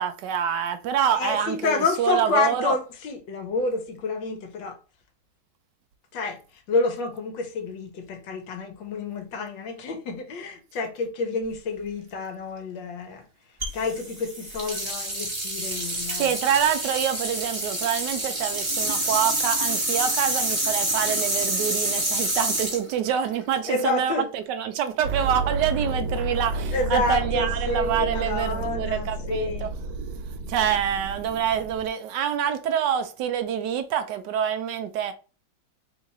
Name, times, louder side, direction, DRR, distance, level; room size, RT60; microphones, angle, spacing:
voice 1, 0.0-2.7 15.8-29.7 30.5-35.1, right 8 dB, 75° right, 1.1 m, -26 dB
voice 2, 1.1-4.8 6.1-13.2 13.7-16.3 23.7-24.3 26.7-29.7, left 3 dB, 70° left, 1.5 m, -29 dB
sound 1, 13.6-23.8, right 1 dB, 25° right, 0.7 m, -27 dB
sound 2, 25.0-31.9, right 3 dB, 90° right, 1.5 m, -31 dB
3.6 x 2.4 x 4.0 m
omnidirectional pair, 2.2 m